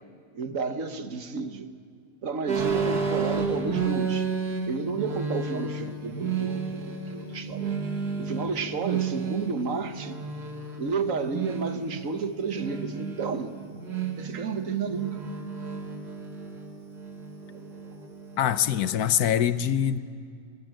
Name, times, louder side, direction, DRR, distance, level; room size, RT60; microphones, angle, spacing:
voice 1, 0.3-1.7 2.2-4.3 4.7-7.7 8.2-10.2 10.8-13.6 14.2-15.2 17.5-18.0, right 5 dB, 55° right, 9 dB, 1.4 m, -32 dB
sound 1, 2.5-19.0, right 5 dB, 80° right, 2.5 m, -32 dB
voice 2, 18.4-20.0, left 9 dB, 75° left, 13 dB, 1.2 m, -24 dB
23.0 x 18.5 x 9.0 m, 2.1 s
omnidirectional pair, 1.7 m